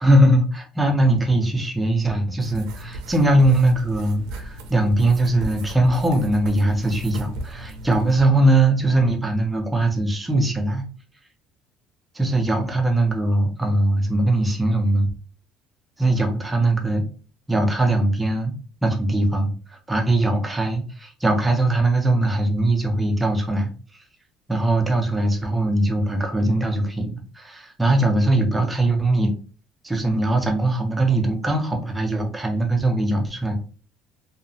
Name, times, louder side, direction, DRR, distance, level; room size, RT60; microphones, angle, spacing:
voice 1, 0.0-10.8 12.1-15.1 16.0-17.0 17.5-18.5 18.8-24.0 24.5-29.3 29.8-33.5, right 1 dB, 5° right, 2 dB, 0.4 m, -21 dB
sound 1, 2.4-8.2, right 1 dB, 75° right, 0.4 m, -37 dB
2.7 x 2.0 x 2.6 m, 0.38 s
cardioid pair, 175°, 0 cm